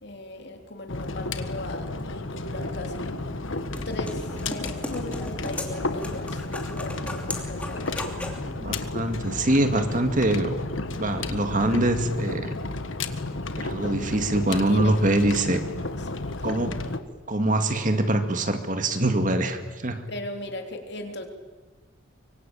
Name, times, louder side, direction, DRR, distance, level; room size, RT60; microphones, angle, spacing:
voice 1, 0.0-3.3 3.9-6.5 6.7-8.0 14.7-15.0 16.1-16.4 20.1-21.3, left 1 dB, 55° left, 4 dB, 3.5 m, -38 dB
sound 1, 0.9-17.0, left 2 dB, 75° left, 1.6 m, -32 dB
sound 2, 3.5-8.4, left 1 dB, 5° left, 2.8 m, -37 dB
voice 2, 8.4-10.5 11.0-12.5 13.6-15.6 16.4-16.8 17.3-20.0, right 1 dB, 40° right, 7 dB, 2.1 m, -24 dB
24.5 x 24.0 x 9.1 m, 1.3 s
head